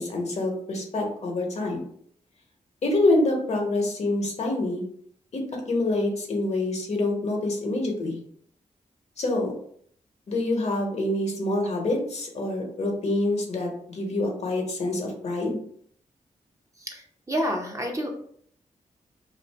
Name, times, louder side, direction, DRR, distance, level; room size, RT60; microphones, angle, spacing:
voice 1, 0.0-1.8 2.8-4.8 5.3-8.2 9.2-9.5 10.3-15.6, left 2 dB, 55° left, 1 dB, 1.0 m, -26 dB
voice 2, 16.8-18.1, equal, 25° right, 2 dB, 0.6 m, -29 dB
2.6 x 2.4 x 3.3 m, 0.62 s
cardioid pair, 65°, 13 cm